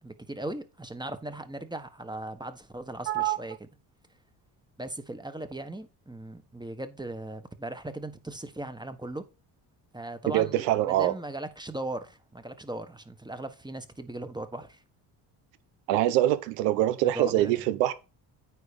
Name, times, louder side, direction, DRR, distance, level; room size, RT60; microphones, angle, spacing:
voice 1, 0.0-3.7 4.8-9.3 9.9-14.8 17.1-17.6, right 1 dB, 10° right, 1.4 m, -38 dB
voice 2, 3.1-3.4 10.3-11.1 15.9-17.9, right 14 dB, 90° right, 0.9 m, -24 dB
9.3 x 4.1 x 5.3 m
supercardioid pair, 65°, 47 cm